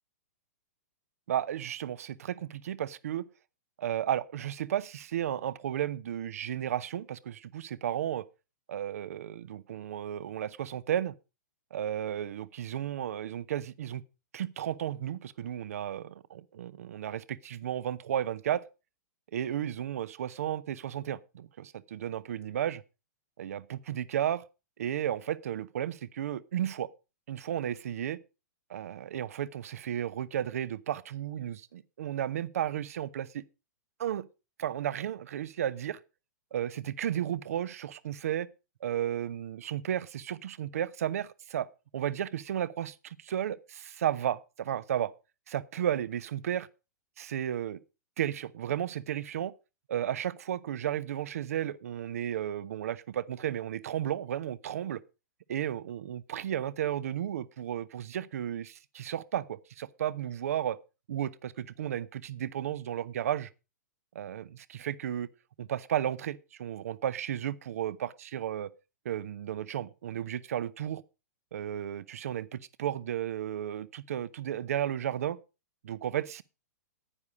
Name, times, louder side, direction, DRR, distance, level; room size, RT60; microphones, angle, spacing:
voice 1, 1.3-3.2 3.8-8.2 8.7-11.1 11.7-14.0 14.3-18.6 19.3-22.8 23.4-24.4 24.8-26.9 27.3-28.2 28.7-33.4 34.0-34.3 34.6-36.0 36.5-38.5 38.8-41.7 41.9-45.1 45.5-46.7 47.2-47.8 48.2-49.5 49.9-55.0 55.5-60.8 61.1-63.5 64.1-65.3 65.6-68.7 69.0-71.0 71.5-75.4 75.8-76.4, right 10 dB, 60° right, 0.7 m, -33 dB
9.9 x 9.6 x 5.0 m
figure-of-eight pair, 110°, 9 cm